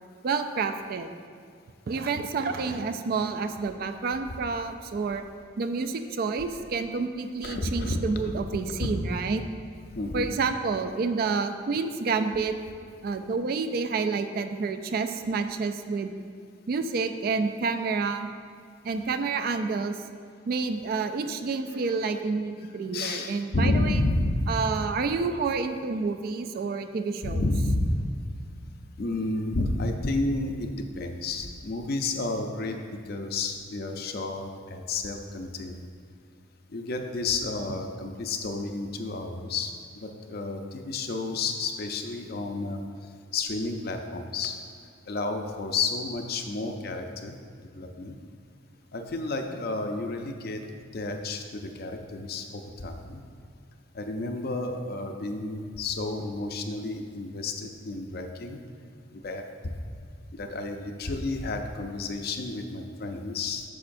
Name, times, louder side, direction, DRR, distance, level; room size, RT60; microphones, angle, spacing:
voice 1, 0.2-1.1 1.9-5.3 5.6-9.4 10.1-12.6 13.0-16.1 16.7-18.3 18.8-20.0 20.5-24.0 24.5-27.4, right 4 dB, 50° right, 9 dB, 0.3 m, -29 dB
voice 2, 7.4-8.0 9.9-10.3 21.7-21.8 22.9-24.5 27.2-28.0 29.0-35.8 36.7-39.7 40.0-42.8 43.3-44.6 45.1-47.4 47.7-48.1 48.9-50.6 50.9-53.2 53.9-58.6 59.1-59.4 60.3-63.6, left 2 dB, 50° left, 5 dB, 0.5 m, -31 dB
8.5 x 6.3 x 2.6 m, 2.2 s
head